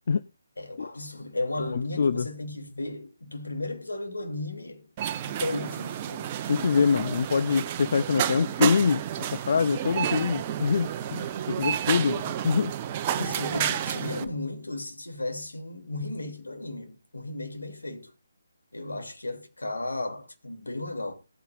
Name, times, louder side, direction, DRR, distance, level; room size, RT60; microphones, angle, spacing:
voice 1, 0.6-4.9 5.3-6.4 13.1-18.1 18.7-21.1, left 2 dB, 75° left, 3.0 m, -35 dB
voice 2, 1.7-2.3 6.5-9.0 9.3-12.7 13.2-13.3, left 5 dB, 50° left, 0.5 m, -25 dB
sound 1, 5.0-14.3, right 10 dB, 25° right, 0.9 m, -31 dB
18.5 x 9.2 x 2.6 m
figure-of-eight pair, 145°, 0 cm